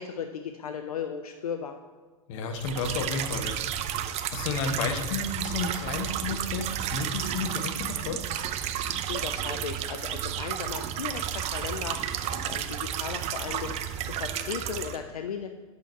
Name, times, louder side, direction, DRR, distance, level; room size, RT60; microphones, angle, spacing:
voice 1, 0.0-1.8 9.1-12.0 12.3-15.5, left 7 dB, 85° left, 6 dB, 0.5 m, -36 dB
voice 2, 2.3-3.6 4.3-8.2, left 4 dB, 60° left, 6 dB, 1.2 m, -32 dB
sound 1, 2.6-15.0, right 10 dB, 35° right, 0.6 m, -32 dB
8.4 x 6.2 x 4.5 m, 1.3 s
hypercardioid pair, 105°, 18 cm